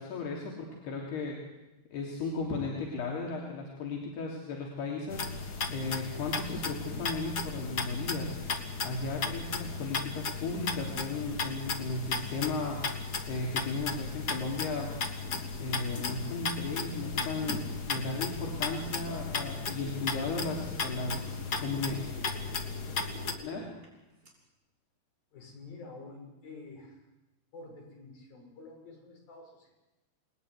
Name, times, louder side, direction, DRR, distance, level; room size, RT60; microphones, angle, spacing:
voice 1, 0.0-1.4 1.9-8.4 8.8-14.9 15.6-21.3 21.6-22.0 23.4-23.7, left 3 dB, 80° left, -1 dB, 5.5 m, -35 dB
sound 1, 5.1-23.3, left 4 dB, 40° left, 1.5 m, -35 dB
sound 2, 14.8-24.3, right 1 dB, 20° right, 6.9 m, -50 dB
voice 2, 25.3-27.1 27.5-29.8, left 3 dB, 65° left, 1 dB, 8.6 m, -48 dB
29.0 x 21.0 x 9.8 m, 1.0 s
omnidirectional pair, 4.5 m